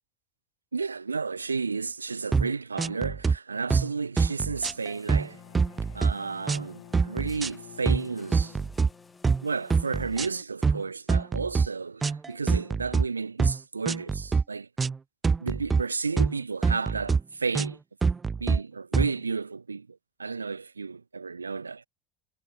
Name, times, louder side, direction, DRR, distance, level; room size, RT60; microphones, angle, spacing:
voice 1, 0.7-5.4 5.9-8.6 9.4-14.7 15.4-17.8 18.4-21.9, right 4 dB, 90° right, 1.3 m, -32 dB
sound 1, 2.3-2.5 2.8-3.4 3.7-3.9 4.2-5.3 5.6-6.1 6.5-6.7 6.9-7.5 7.9-8.0 8.3-8.9 9.2-9.4 9.7-10.3 10.6-10.8 11.1-11.7 12.0-13.1 13.4-13.6 13.9-14.4 14.8-15.0 15.2-15.8 16.2-16.3 16.6-17.2 17.6-17.7 18.0-18.6 18.9-19.1, right 5 dB, 20° right, 0.5 m, -24 dB
sound 2, 4.6-10.4, left 4 dB, 20° left, 2.9 m, -53 dB
Bowed string instrument, 5.1-9.2, left 18 dB, 70° left, 1.5 m, -51 dB
figure-of-eight pair, 75°, 0 cm